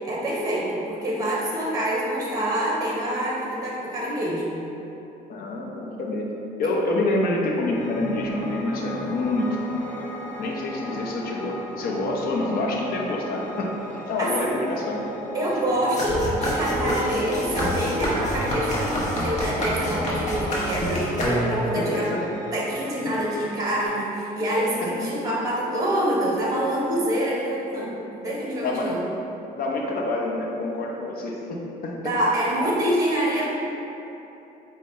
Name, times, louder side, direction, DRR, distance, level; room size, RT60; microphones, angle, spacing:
voice 1, 0.0-4.6 14.2-14.6 15.3-22.1 22.5-29.0 32.0-33.5, right 1 dB, 20° right, -4 dB, 0.9 m, -26 dB
voice 2, 5.3-6.3 6.6-10.1 10.4-13.7 14.1-15.0 21.7-21.8 22.1-22.2 24.8-24.9 28.6-29.0 29.6-32.0, left 2 dB, 60° left, -1 dB, 0.7 m, -27 dB
Piano, 7.7-23.9, equal, 10° left, 0.5 m, -35 dB
sound 1, 16.0-21.8, equal, 45° left, 1.0 m, -27 dB
5.0 x 2.2 x 4.2 m, 3.0 s
cardioid pair, 110°, 17 cm